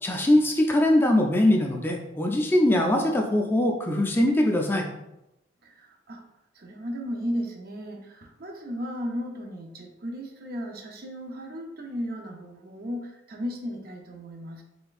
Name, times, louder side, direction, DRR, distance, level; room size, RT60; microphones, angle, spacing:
voice 1, 0.0-4.9, left 1 dB, 10° left, 2 dB, 0.3 m, -22 dB
voice 2, 5.6-6.2 6.5-14.6, equal, 55° right, 3 dB, 0.6 m, -35 dB
4.2 x 3.3 x 2.4 m, 0.90 s
head